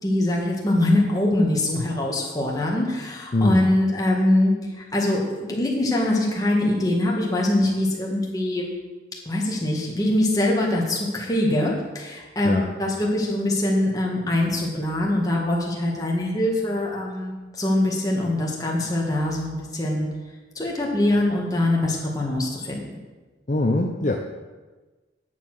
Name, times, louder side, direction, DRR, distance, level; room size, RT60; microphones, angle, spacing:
voice 1, 0.0-8.7 9.3-20.1 20.6-23.0, left 1 dB, 20° left, -2 dB, 1.9 m, -23 dB
voice 2, 3.3-3.7 12.4-12.7 23.5-24.2, left 2 dB, 40° left, 2 dB, 0.7 m, -22 dB
9.9 x 7.1 x 6.3 m, 1.3 s
head